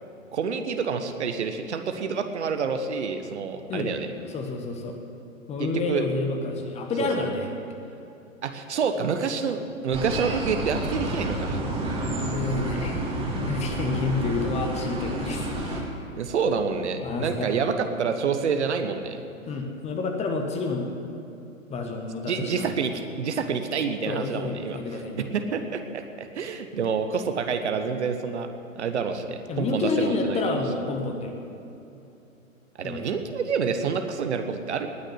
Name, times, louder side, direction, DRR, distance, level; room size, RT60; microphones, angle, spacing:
voice 1, 0.3-4.1 5.6-6.0 7.0-7.1 8.4-11.6 16.2-19.2 22.3-25.0 25.3-28.5 28.7-30.6 32.8-34.9, right 5 dB, 55° right, 7 dB, 1.3 m, -28 dB
voice 2, 4.3-5.0 5.5-7.5 12.0-13.0 13.4-15.8 17.0-17.5 19.4-20.9 21.7-22.7 24.1-25.3 29.5-31.3 32.8-33.1, left 3 dB, 15° left, 3 dB, 1.3 m, -29 dB
sound 1, 9.9-15.8, right 1 dB, 15° right, 2.1 m, -29 dB
19.5 x 6.5 x 9.9 m, 2.8 s
figure-of-eight pair, 110°, 41 cm